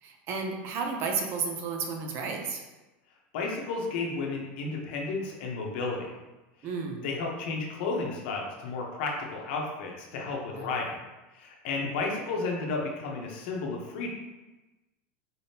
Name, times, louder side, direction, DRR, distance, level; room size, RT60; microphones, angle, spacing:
voice 1, 0.0-2.6 6.6-7.1 10.5-10.7, right 5 dB, 35° right, 3 dB, 0.6 m, -32 dB
voice 2, 3.3-6.2 7.0-11.0 11.3-14.1, left 3 dB, 65° left, 0 dB, 0.9 m, -32 dB
4.0 x 3.5 x 2.8 m, 1.1 s
supercardioid pair, 160°, 6 cm